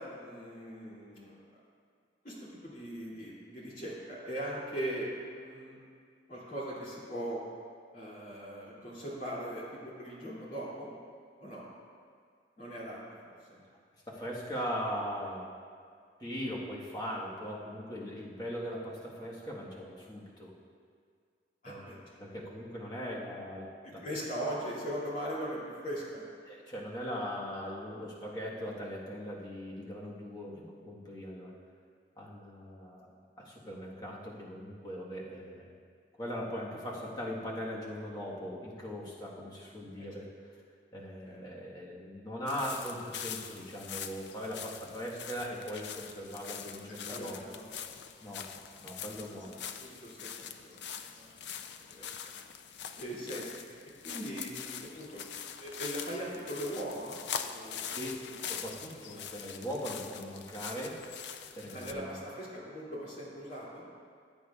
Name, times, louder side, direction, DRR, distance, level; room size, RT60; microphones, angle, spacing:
voice 1, 0.0-1.4 2.2-2.3 2.6-5.1 5.3-5.8 6.3-7.4 7.9-10.9 11.4-11.6 12.6-13.6 21.6-22.0 24.0-26.2 40.0-40.1 41.2-41.4 47.1-48.0 49.4-51.5 51.8-52.3 53.0-53.5 54.0-55.2 55.6-57.9 59.1-59.3 61.7-63.8, right 1 dB, 50° left, -7 dB, 2.6 m, -40 dB
voice 2, 14.1-15.5 16.2-20.5 21.7-24.0 26.4-31.5 32.2-35.7 36.2-40.3 40.9-47.6 48.2-48.5 48.8-49.5 57.8-58.2 58.5-61.0 61.5-62.1, equal, 25° left, -4 dB, 1.4 m, -40 dB
sound 1, 42.5-61.9, left 8 dB, 80° left, 0.5 m, -43 dB
15.0 x 9.0 x 2.4 m, 2.1 s
head